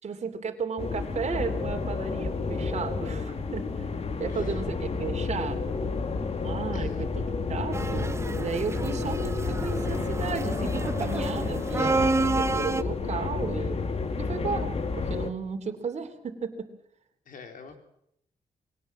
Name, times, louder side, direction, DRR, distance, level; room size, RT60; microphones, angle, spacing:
voice 1, 0.0-5.8 6.4-7.2 7.5-13.8 14.2-16.7, right 5 dB, 50° right, 3 dB, 3.2 m, -34 dB
sound 1, 0.8-15.3, left 4 dB, 45° left, 2.2 m, -30 dB
voice 2, 6.7-7.1 17.3-17.8, left 5 dB, 70° left, 6 dB, 4.2 m, -46 dB
sound 2, 7.7-12.8, right 3 dB, 20° right, 0.9 m, -30 dB
22.5 x 18.5 x 7.4 m, 0.75 s
cardioid pair, 105°, 14 cm